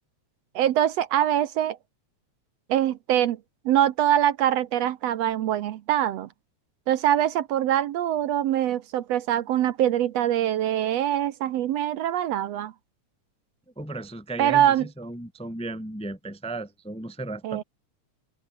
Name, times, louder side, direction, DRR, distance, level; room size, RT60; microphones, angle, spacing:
voice 1, 0.6-1.8 2.7-3.4 3.7-6.3 6.9-12.7 14.4-14.9 17.4-17.6, right 11 dB, 70° right, 1.9 m, -23 dB
voice 2, 13.8-17.6, right 2 dB, 5° left, 0.9 m, -35 dB
open air
omnidirectional pair, 3.4 m